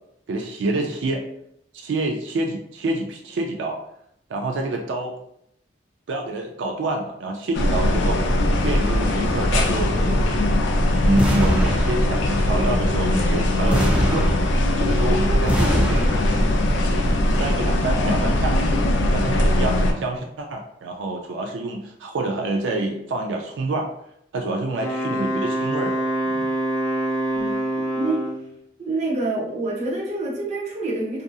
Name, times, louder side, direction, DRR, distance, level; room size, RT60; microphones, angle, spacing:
voice 1, 0.3-1.3 1.7-3.8 4.3-5.2 6.1-8.3 8.6-14.3 14.8-16.1 17.3-18.6 19.1-23.9 24.3-26.5, right 2 dB, 85° right, 2 dB, 0.4 m, -27 dB
sound 1, 7.5-19.9, left 1 dB, 90° left, 0.4 m, -20 dB
sound 2, 11.2-12.4 13.7-15.0 15.5-16.6, equal, 5° right, 0.3 m, -24 dB
Wind instrument woodwind instrument, 24.7-28.5, right 1 dB, 20° left, 0.7 m, -25 dB
voice 2, 27.3-28.2 28.8-31.2, right 2 dB, 40° right, -3 dB, 0.8 m, -27 dB
2.6 x 2.5 x 2.3 m, 0.74 s
head